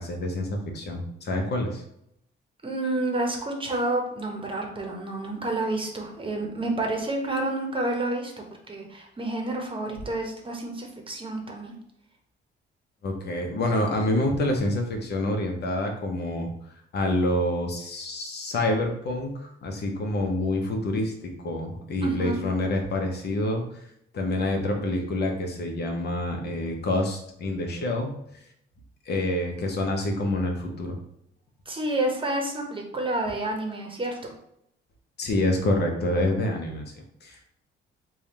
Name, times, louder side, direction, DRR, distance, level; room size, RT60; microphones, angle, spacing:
voice 1, 0.0-1.8 13.0-16.5 16.9-23.6 24.1-28.1 29.1-31.0 35.2-36.8 37.2-37.5, left 1 dB, 55° left, 2 dB, 0.9 m, -27 dB
voice 2, 2.6-8.3 8.7-11.7 22.0-22.4 31.7-34.3, right 2 dB, 25° right, 2 dB, 0.9 m, -29 dB
3.4 x 2.4 x 4.2 m, 0.75 s
cardioid pair, 90°, 20 cm